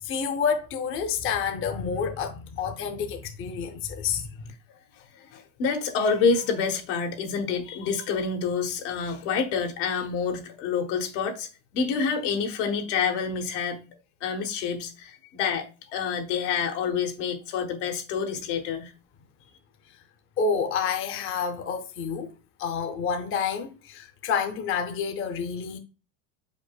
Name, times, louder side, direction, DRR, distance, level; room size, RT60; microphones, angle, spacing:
voice 1, 0.0-4.5 20.4-22.3 22.6-25.8, left 6 dB, 35° left, 0.7 m, -29 dB
voice 2, 5.0-13.8 14.2-18.9, left 5 dB, 75° left, 1.2 m, -28 dB
5.2 x 4.5 x 2.2 m
supercardioid pair, 120°, 38 cm